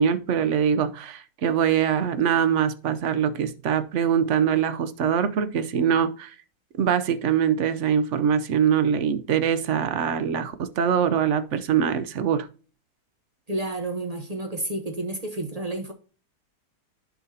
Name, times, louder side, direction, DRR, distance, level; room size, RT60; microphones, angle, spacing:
voice 1, 0.0-6.3 6.8-12.5, right 8 dB, 60° right, 0.8 m, -23 dB
voice 2, 13.5-15.9, right 2 dB, 30° right, 0.7 m, -30 dB
11.5 x 4.9 x 2.7 m
omnidirectional pair, 1.9 m